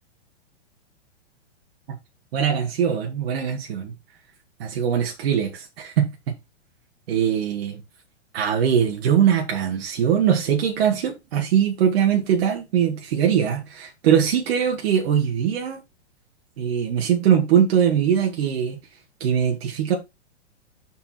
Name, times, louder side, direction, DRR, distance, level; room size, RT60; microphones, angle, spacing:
voice 1, 2.3-3.9 4.6-6.1 7.1-7.8 8.3-15.8 16.6-18.8 19.2-19.9, right 8 dB, 55° right, 2.3 m, -21 dB
6.5 x 5.5 x 4.7 m
hypercardioid pair, 140°, 36 cm